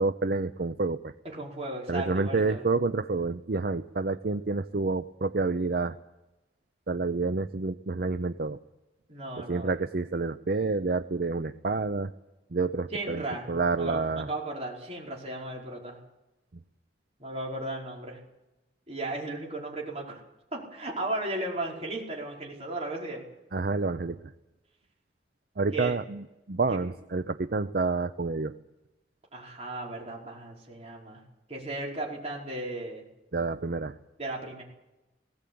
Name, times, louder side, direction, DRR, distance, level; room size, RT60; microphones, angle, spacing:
voice 1, 0.0-1.1 1.9-6.0 6.9-8.6 9.4-12.1 12.5-14.3 23.5-24.2 25.6-28.5 33.3-34.0, right 3 dB, 60° right, 11 dB, 0.6 m, -29 dB
voice 2, 1.2-2.6 9.1-9.7 12.9-16.0 17.2-18.2 18.9-20.2 20.5-23.2 25.7-25.9 29.3-31.2 31.5-33.0 34.2-34.6, right 2 dB, 35° right, -2 dB, 5.2 m, -35 dB
19.5 x 17.0 x 8.6 m, 1.0 s
head